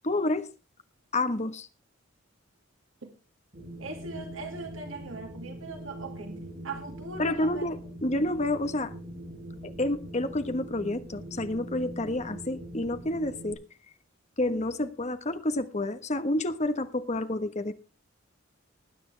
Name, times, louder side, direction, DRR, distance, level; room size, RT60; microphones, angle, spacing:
voice 1, 0.0-0.5 1.1-1.7 7.2-8.9 9.6-13.6 14.4-17.7, left 1 dB, 35° left, 10 dB, 1.3 m, -29 dB
Wind, 3.5-13.5, right 1 dB, 45° right, 5.4 m, -42 dB
voice 2, 3.8-7.6 8.2-8.3, right 3 dB, 80° right, 4 dB, 2.2 m, -40 dB
19.5 x 9.7 x 3.4 m, 0.32 s
head